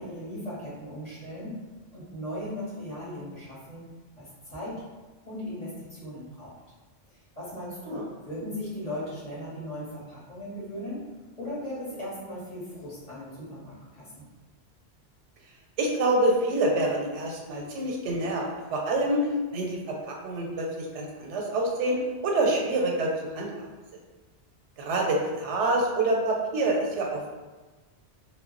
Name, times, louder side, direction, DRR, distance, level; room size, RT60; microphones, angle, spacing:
voice 1, 0.0-1.5 1.9-3.8 4.2-4.8 5.3-6.5 7.1-11.0 11.4-14.3, left 1 dB, 40° left, -8 dB, 0.9 m, -37 dB
voice 2, 15.8-18.4 18.7-19.3 19.5-23.1 23.3-23.7 24.8-27.4, right 2 dB, 90° right, 0 dB, 0.9 m, -26 dB
2.2 x 2.0 x 3.7 m, 1.3 s
omnidirectional pair, 1.1 m